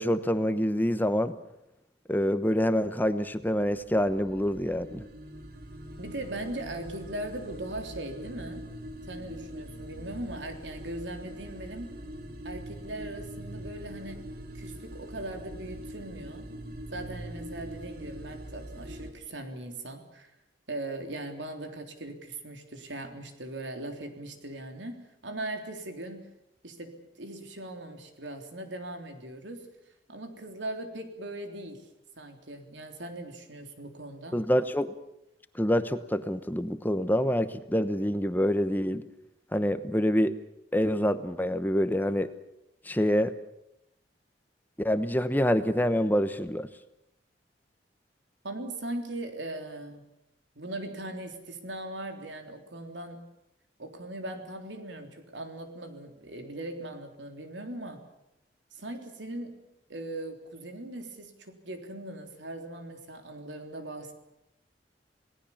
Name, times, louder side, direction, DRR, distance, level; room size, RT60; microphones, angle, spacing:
voice 1, 0.0-1.3 2.1-5.1 34.3-34.9 35.5-39.0 39.5-40.4 40.7-42.3 42.8-43.3 44.8-46.7, equal, 10° left, 11 dB, 1.0 m, -26 dB
sound 1, 3.4-19.1, right 1 dB, 55° right, 3.3 m, -43 dB
voice 2, 6.0-8.6 9.0-11.9 12.4-14.2 14.5-16.5 16.9-20.3 20.7-26.2 26.6-29.7 30.1-31.8 32.2-34.4 48.4-50.0 50.6-53.3 53.8-58.0 58.7-59.6 59.9-64.1, right 1 dB, 85° right, 5 dB, 3.5 m, -39 dB
28.0 x 18.5 x 7.2 m, 0.86 s
head